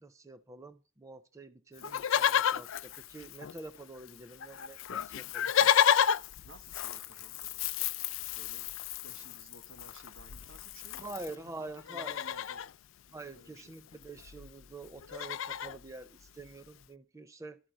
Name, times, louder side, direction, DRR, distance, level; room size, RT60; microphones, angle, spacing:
voice 1, 0.0-5.5 11.0-12.2 13.1-17.6, right 2 dB, 15° right, 0.4 m, -46 dB
Livestock farm animals working animals, 1.8-3.8 4.1-4.2 4.4-11.3 11.8-12.7 13.9-14.0 14.2-14.5 14.8-15.8 16.4-16.5, left 9 dB, 70° left, 0.4 m, -31 dB
voice 2, 6.4-7.7 8.3-8.7 9.0-12.7 13.3-13.9, right 1 dB, 70° right, 1.5 m, -56 dB
12.5 x 4.5 x 7.7 m
head